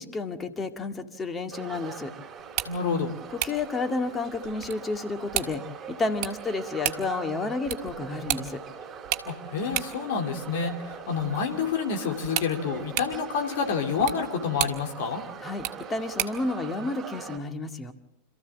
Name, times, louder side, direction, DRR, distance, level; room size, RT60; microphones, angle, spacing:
voice 1, 0.0-2.1 3.3-5.6 5.9-8.6 15.4-17.9, left 3 dB, 15° left, 7 dB, 2.0 m, -31 dB
sound 1, 1.5-17.4, right 7 dB, 25° right, 4.1 m, -42 dB
sound 2, 2.4-16.5, right 13 dB, 40° right, 1.6 m, -36 dB
voice 2, 2.6-3.1 9.2-15.2, left 5 dB, 55° left, 3 dB, 3.1 m, -28 dB
27.0 x 14.5 x 7.5 m, 0.79 s
figure-of-eight pair, 90°, 0 cm